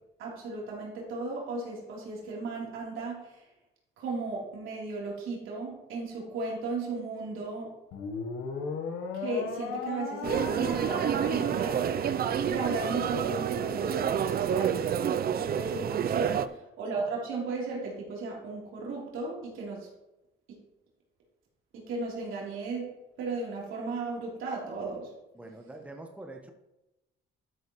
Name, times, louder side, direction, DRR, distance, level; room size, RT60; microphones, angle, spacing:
voice 1, 0.2-3.4 4.0-7.7 9.1-12.1 12.4-14.9 15.3-16.4 16.8-19.9 21.8-22.9 23.2-25.1, right 3 dB, 85° right, -4 dB, 3.5 m, -35 dB
sound 1, 7.9-14.4, left 3 dB, 85° left, 1.2 m, -38 dB
sound 2, 10.2-16.5, right 9 dB, 50° right, 0.5 m, -29 dB
voice 2, 25.3-26.5, right 2 dB, 5° right, 3 dB, 1.1 m, -45 dB
12.5 x 7.2 x 3.1 m, 0.96 s
cardioid pair, 90°, 20 cm